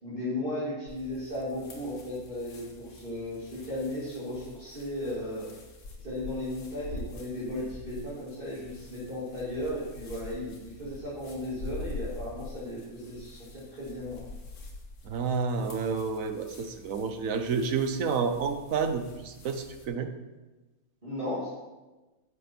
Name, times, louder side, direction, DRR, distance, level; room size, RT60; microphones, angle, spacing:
voice 1, 0.0-5.5 6.0-14.3 21.0-21.5, left 1 dB, 35° right, -9 dB, 2.7 m, -35 dB
sound 1, 0.9-19.9, left 2 dB, 85° left, 1.7 m, -46 dB
voice 2, 15.0-20.1, right 5 dB, 65° right, 8 dB, 1.2 m, -30 dB
10.5 x 7.1 x 4.4 m, 1.1 s
omnidirectional pair, 1.5 m